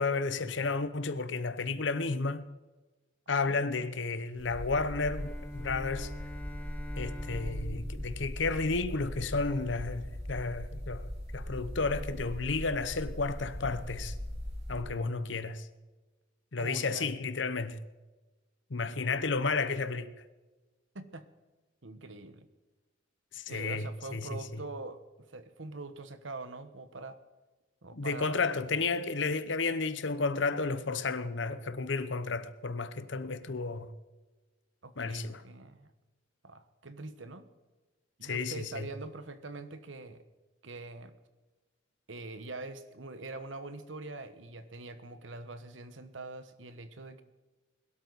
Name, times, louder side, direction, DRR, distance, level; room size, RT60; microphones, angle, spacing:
voice 1, 0.0-2.4 3.3-6.1 7.0-14.2 14.7-15.7 16.5-17.8 18.7-20.1 23.3-24.6 27.9-33.9 35.0-35.4 38.2-38.9, left 4 dB, 70° left, 0.9 m, -32 dB
sound 1, 4.4-14.8, equal, 35° right, 5.2 m, -40 dB
Bowed string instrument, 5.0-9.4, equal, 10° left, 1.0 m, -47 dB
voice 2, 16.6-17.1 20.9-21.3 21.8-22.5 23.5-27.2 27.8-28.5 34.8-35.9 36.4-37.5 38.2-40.2 40.6-41.1 42.1-47.2, right 3 dB, 80° right, 1.2 m, -44 dB
21.5 x 12.5 x 4.1 m
head